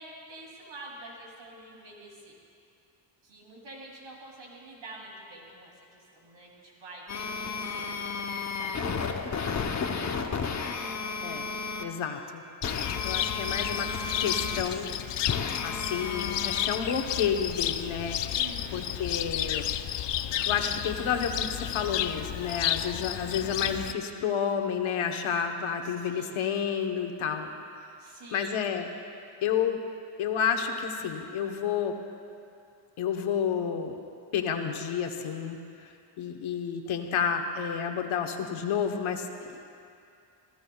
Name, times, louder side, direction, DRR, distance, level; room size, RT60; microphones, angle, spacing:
voice 1, 0.0-2.3 3.2-9.4 18.3-18.8 25.8-26.8 28.0-28.5, right 2 dB, 75° right, -2 dB, 3.0 m, -47 dB
sound 1, 7.1-11.8 12.6-14.6 15.3-16.7, left 5 dB, 35° left, 0.9 m, -33 dB
voice 2, 11.8-12.4 13.0-13.9 14.2-14.9 15.6-18.2 18.7-19.6 20.5-27.5 28.3-28.9 29.4-29.8 30.2-32.0 33.0-34.0 34.3-35.6 36.2-39.7, left 7 dB, 85° left, 5 dB, 1.2 m, -30 dB
Cricket, 12.6-23.9, left 11 dB, 65° left, 0.6 m, -32 dB
29.5 x 15.5 x 2.3 m, 2.5 s
cardioid pair, 115°, 47 cm